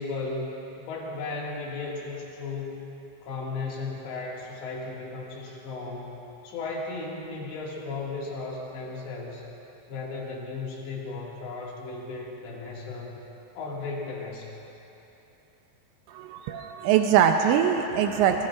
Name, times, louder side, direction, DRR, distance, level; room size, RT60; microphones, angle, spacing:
voice 1, 0.0-2.9 3.2-9.5 9.9-13.2 13.6-14.6, left 3 dB, 65° left, -3 dB, 4.1 m, -35 dB
voice 2, 16.1-18.5, right 8 dB, 90° right, 4 dB, 2.5 m, -22 dB
26.0 x 21.5 x 2.5 m, 3.0 s
omnidirectional pair, 5.9 m